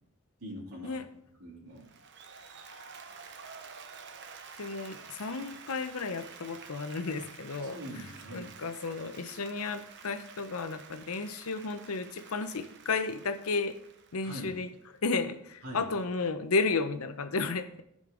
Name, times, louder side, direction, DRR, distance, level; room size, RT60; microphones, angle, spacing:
voice 1, 0.4-1.0 1.4-1.8 7.6-8.5 14.2-14.5 15.6-15.9, equal, 75° right, -4 dB, 3.0 m, -42 dB
Applause, 1.8-15.0, right 5 dB, 55° right, 0.8 m, -50 dB
voice 2, 4.6-7.8 8.3-13.8 14.1-14.7 15.0-17.8, left 4 dB, 75° left, 10 dB, 0.7 m, -33 dB
14.5 x 5.2 x 3.9 m, 0.76 s
head